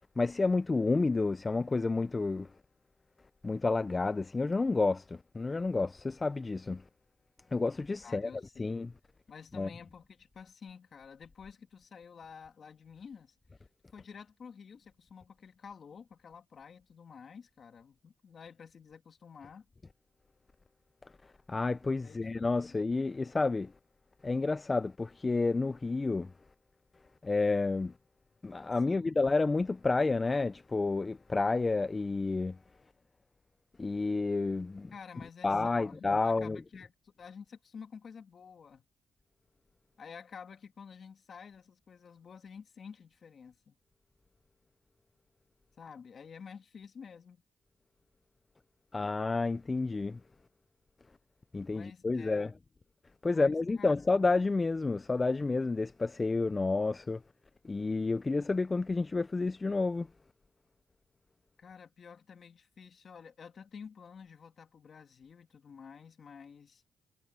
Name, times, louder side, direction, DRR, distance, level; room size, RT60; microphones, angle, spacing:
voice 1, 0.2-2.5 3.4-6.8 7.5-8.3 8.6-8.9 9.5-9.7 21.0-23.7 24.2-26.3 27.2-27.9 28.4-32.6 33.8-34.9 35.4-36.6 48.9-50.2 51.5-52.5 53.2-57.2 57.6-60.1, left 3 dB, 25° left, 0.5 m, -30 dB
voice 2, 8.0-8.8 9.3-13.6 13.9-19.7 22.0-22.7 28.9-29.2 34.9-38.8 40.0-43.8 45.8-47.4 51.7-52.5 53.3-54.1 61.6-66.8, left 6 dB, 55° left, 2.3 m, -50 dB
cardioid pair, 85°, 0 cm